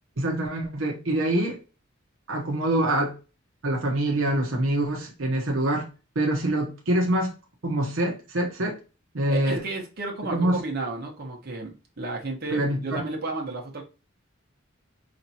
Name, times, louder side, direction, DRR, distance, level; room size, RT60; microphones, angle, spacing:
voice 1, 0.2-1.6 2.3-3.1 3.6-5.9 6.1-7.4 7.6-8.8 9.1-9.6 10.3-10.6 12.5-13.0, right 1 dB, 75° right, 0 dB, 1.0 m, -25 dB
voice 2, 9.3-13.8, right 3 dB, 50° right, 0 dB, 1.2 m, -32 dB
5.0 x 2.9 x 2.8 m, 0.32 s
head